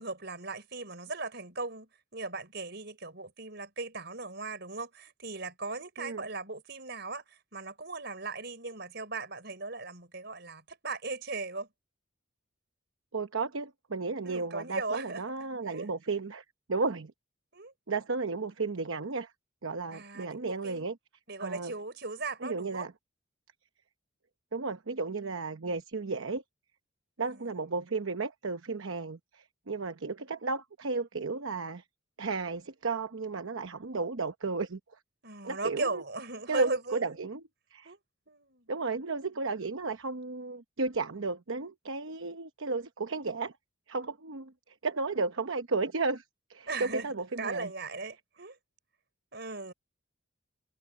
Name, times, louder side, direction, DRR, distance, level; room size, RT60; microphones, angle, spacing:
voice 1, 0.0-11.7 14.2-15.2 15.6-15.9 17.5-17.7 19.9-20.9 21.3-22.9 27.2-27.6 35.2-37.2 37.8-38.0 38.3-38.7 46.7-47.1 47.4-48.6 49.3-49.7, right 3 dB, 50° right, 5.2 m, -38 dB
voice 2, 13.1-16.4 16.7-17.1 17.9-19.3 19.6-20.9 21.4-21.7 22.4-22.9 24.5-26.4 27.2-31.8 32.2-34.8 35.4-36.0 36.5-37.4 37.7-37.9 38.7-43.5 43.9-46.2 46.5-47.7, right 3 dB, 70° right, 0.9 m, -33 dB
head